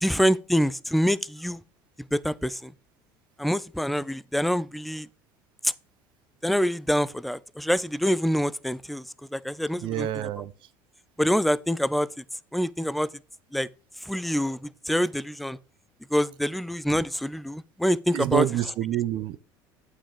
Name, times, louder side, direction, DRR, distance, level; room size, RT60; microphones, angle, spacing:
voice 1, 0.0-1.6 2.1-2.7 3.4-5.1 5.6-5.7 6.4-9.0 9.3-10.1 11.2-12.1 12.5-13.1 13.5-13.7 14.0-15.6 16.1-18.4, equal, ahead, 0.4 m, -25 dB
voice 2, 9.8-10.5 18.1-19.4, right 13 dB, 55° right, 0.8 m, -27 dB
8.5 x 5.8 x 5.0 m
supercardioid pair, 110°, 10 cm